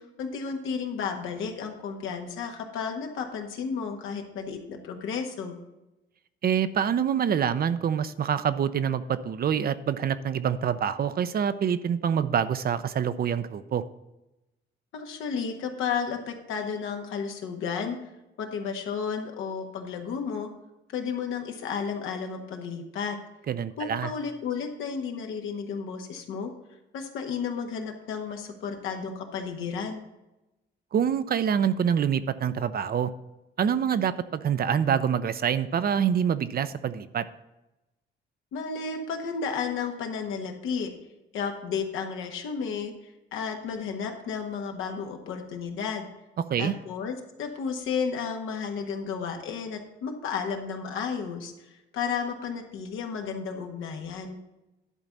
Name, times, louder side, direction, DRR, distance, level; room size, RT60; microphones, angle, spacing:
voice 1, 0.0-5.6 14.9-18.0 18.4-20.5 20.9-23.2 23.8-26.5 26.9-30.0 38.5-40.9 41.3-46.0 46.6-54.4, left 6 dB, 85° left, 3 dB, 1.5 m, -33 dB
voice 2, 6.4-13.8 23.5-24.1 30.9-33.1 33.6-37.3 46.5-46.7, right 8 dB, 50° right, 13 dB, 0.6 m, -26 dB
11.0 x 4.0 x 7.2 m, 0.98 s
cardioid pair, 90°, 20 cm